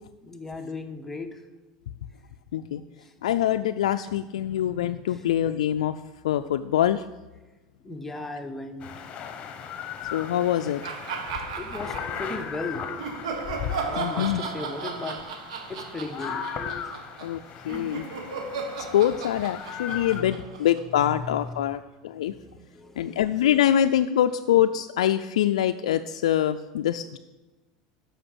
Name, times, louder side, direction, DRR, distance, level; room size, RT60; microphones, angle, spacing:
voice 1, 0.2-1.4 3.0-3.1 5.1-5.3 7.8-9.1 11.6-13.0 13.8-15.2 15.7-16.4 16.8-16.9 19.9-21.8 22.3-23.3, left 3 dB, 10° left, 5 dB, 1.0 m, -37 dB
voice 2, 3.2-5.9 6.2-7.0 10.1-10.8 13.8-14.4 17.2-18.1 18.9-22.3 23.0-27.2, left 11 dB, 90° left, 7 dB, 0.3 m, -24 dB
sound 1, 8.8-20.2, left 7 dB, 35° left, 1.2 m, -37 dB
sound 2, 10.8-12.5 13.0-21.2, right 5 dB, 85° right, 1.3 m, -35 dB
7.8 x 6.3 x 7.8 m, 1.1 s
supercardioid pair, 110°, 3 cm